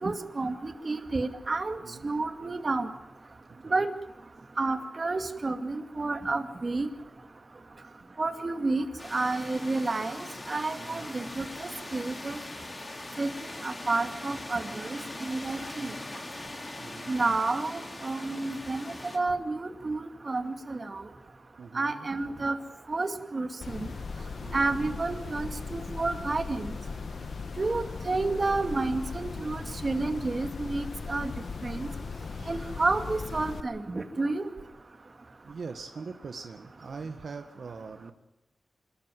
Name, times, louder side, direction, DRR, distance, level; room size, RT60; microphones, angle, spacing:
voice 1, 0.0-2.9 3.7-3.9 4.6-6.9 8.2-8.9 9.1-10.2 10.5-12.4 13.2-13.3 13.6-15.9 17.1-21.0 21.7-22.6 22.9-23.9 24.5-26.7 27.6-31.3 31.6-31.9 32.5-34.5, right 3 dB, 40° right, 7 dB, 2.3 m, -30 dB
sound 1, 9.0-19.2, left 2 dB, 30° left, 3.2 m, -41 dB
voice 2, 10.8-11.1 15.8-15.9 16.8-17.1 21.6-22.1 24.4-24.9 27.6-27.7 32.3-32.7 35.4-38.1, right 4 dB, 70° right, 6 dB, 1.7 m, -42 dB
sound 2, 23.6-33.6, left 4 dB, 65° left, 1.2 m, -38 dB
27.5 x 13.0 x 9.3 m, 0.99 s
wide cardioid pair, 90°, 0 cm